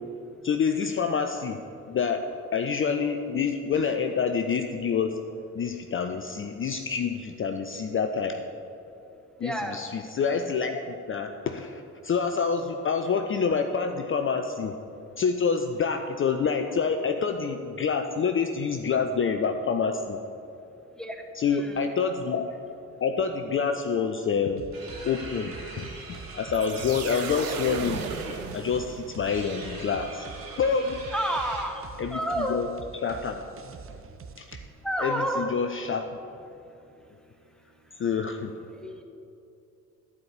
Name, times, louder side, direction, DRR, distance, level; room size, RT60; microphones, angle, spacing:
voice 1, 0.4-1.6 1.9-2.3 2.5-5.2 5.6-8.4 9.4-14.8 15.2-20.2 21.3-22.5 23.0-24.6 25.0-25.9 26.3-28.0 28.5-30.3 30.6-31.0 32.0-33.4 34.4-34.6 35.0-36.2 38.0-38.5, left 6 dB, 30° left, 6 dB, 0.6 m, -27 dB
voice 2, 9.4-9.8 21.0-21.2 21.5-21.8 31.1-31.8 32.1-32.6 34.8-35.5 38.7-39.0, right 1 dB, ahead, 3 dB, 1.1 m, -30 dB
sound 1, 24.6-34.7, right 5 dB, 30° right, 0.7 m, -45 dB
sound 2, 24.7-31.6, right 3 dB, 50° right, 2.3 m, -43 dB
sound 3, 26.5-29.3, right 7 dB, 85° right, 0.6 m, -36 dB
12.0 x 4.8 x 7.4 m, 2.7 s
figure-of-eight pair, 40°, 43 cm